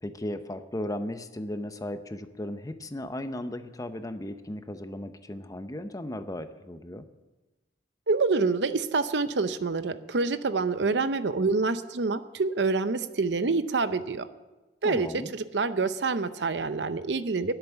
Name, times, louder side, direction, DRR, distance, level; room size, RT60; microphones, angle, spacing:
voice 1, 0.0-7.0 14.8-15.3, left 1 dB, 20° left, 9 dB, 0.7 m, -36 dB
voice 2, 8.1-14.3 14.8-17.6, right 4 dB, 75° right, 12 dB, 0.7 m, -27 dB
10.5 x 8.1 x 9.9 m, 1.1 s
head